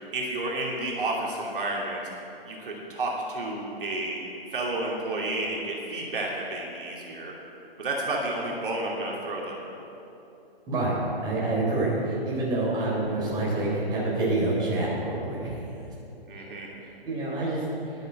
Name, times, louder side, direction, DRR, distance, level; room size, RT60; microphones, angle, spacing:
voice 1, 0.1-2.0 2.5-4.2 4.5-7.3 7.8-9.6 16.3-16.7, right 2 dB, 60° right, -3 dB, 2.8 m, -31 dB
voice 2, 10.7-15.5 17.0-17.6, right 2 dB, 15° right, -6 dB, 3.9 m, -27 dB
12.0 x 11.0 x 7.8 m, 2.9 s
hypercardioid pair, 150°, 31 cm